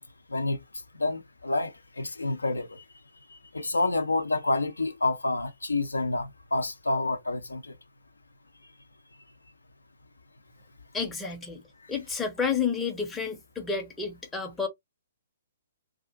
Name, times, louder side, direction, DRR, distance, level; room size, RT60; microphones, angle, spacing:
voice 1, 0.3-0.6 1.0-2.8 3.3-7.7, left 2 dB, 75° left, 0.5 m, -28 dB
voice 2, 10.9-11.6 11.9-14.7, left 6 dB, 10° left, 0.6 m, -30 dB
2.4 x 2.1 x 2.6 m
figure-of-eight pair, 125°, 0 cm